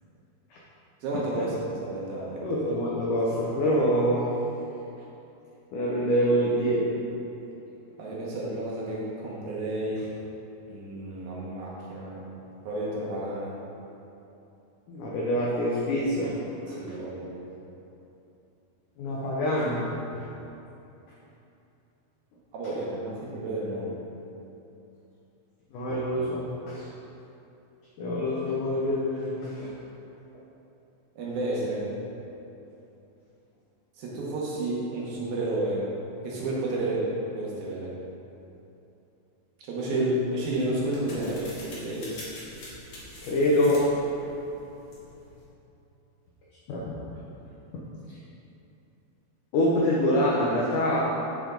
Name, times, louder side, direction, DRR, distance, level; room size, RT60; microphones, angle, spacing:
voice 1, 1.0-2.6 8.0-10.1 10.7-12.3 12.6-13.5 16.7-17.4 22.5-24.0 31.2-31.9 34.0-35.9 36.2-37.9 39.6-42.1, right 1 dB, 70° right, -5 dB, 2.6 m, -31 dB
voice 2, 2.4-4.3 5.7-6.9 14.9-16.4 16.6-16.8 19.0-20.2 25.7-26.9 28.0-29.7 39.9-40.1 43.2-43.9 46.7-46.9 49.5-51.0, equal, 85° left, -5 dB, 1.8 m, -26 dB
sound 1, 40.1-45.5, left 1 dB, 55° left, 1.4 m, -46 dB
10.5 x 5.3 x 3.8 m, 2.9 s
omnidirectional pair, 4.9 m